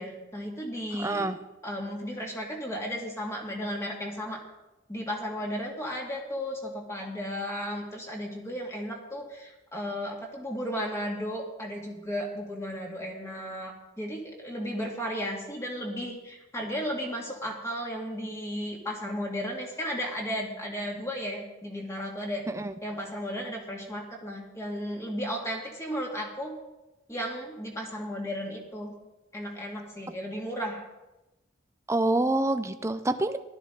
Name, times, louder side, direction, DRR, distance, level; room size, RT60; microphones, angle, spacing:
voice 1, 0.0-1.3 1.6-4.4 4.9-22.4 22.8-26.5 27.1-28.9 29.3-30.9, equal, 15° left, -1 dB, 2.5 m, -34 dB
voice 2, 1.0-1.4 22.5-22.7 31.9-33.4, right 2 dB, 15° right, 9 dB, 0.6 m, -26 dB
16.0 x 13.0 x 4.0 m, 0.99 s
head